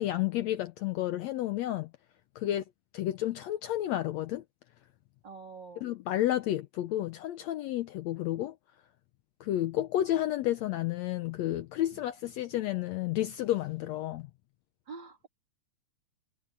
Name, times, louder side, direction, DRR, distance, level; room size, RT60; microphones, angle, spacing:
voice 1, 0.0-1.9 2.4-2.6 2.9-4.4 5.8-8.5 9.4-14.3, left 13 dB, 75° left, 1.7 m, -31 dB
voice 2, 5.2-5.9 11.9-12.0 14.9-15.3, right 5 dB, 35° right, 2.8 m, -46 dB
omnidirectional pair, 3.6 m